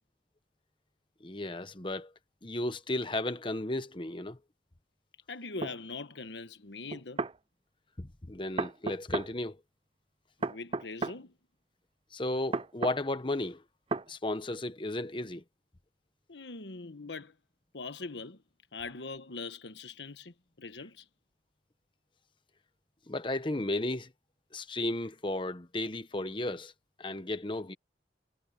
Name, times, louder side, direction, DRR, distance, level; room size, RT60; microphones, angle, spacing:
voice 1, 1.2-2.1 2.4-4.4 8.0-9.6 12.1-13.6 14.1-15.4 23.1-24.1 24.5-26.7 27.0-27.7, left 2 dB, 30° left, 1.1 m, -34 dB
voice 2, 5.3-7.2 10.4-11.3 16.3-17.4 17.7-18.4 18.7-21.1, left 3 dB, 90° left, 1.3 m, -42 dB
sound 1, 5.6-5.8 6.9-7.4 8.6-9.3 10.4-11.2 12.5-13.0 13.9-14.1, right 3 dB, 30° right, 0.6 m, -33 dB
head